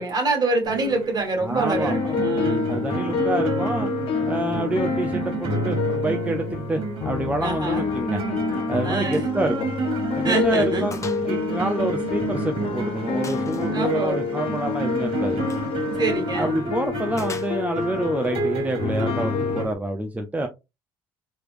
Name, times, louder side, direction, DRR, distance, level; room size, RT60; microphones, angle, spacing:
voice 1, 0.0-2.7 7.4-7.9 8.8-9.3 10.2-10.9 13.5-14.2 15.8-16.6, right 2 dB, 40° right, 1.8 m, -26 dB
sound 1, 0.6-19.7, right 3 dB, 55° right, 1.7 m, -30 dB
voice 2, 1.4-2.1 2.7-3.9 4.3-8.2 8.7-9.7 10.2-11.0 11.2-15.4 16.4-20.5, right 1 dB, 15° right, 0.6 m, -27 dB
sound 2, 1.7-19.6, left 6 dB, 55° left, 0.8 m, -28 dB
Gunshot gunfire, 9.1-9.3 9.7-9.8 10.2-10.3 10.9-11.3 11.6-12.6 13.2-13.7 15.4-15.7 17.2-17.9, left 4 dB, 30° left, 0.7 m, -40 dB
3.3 x 3.2 x 2.5 m
hypercardioid pair, 60°, 11 cm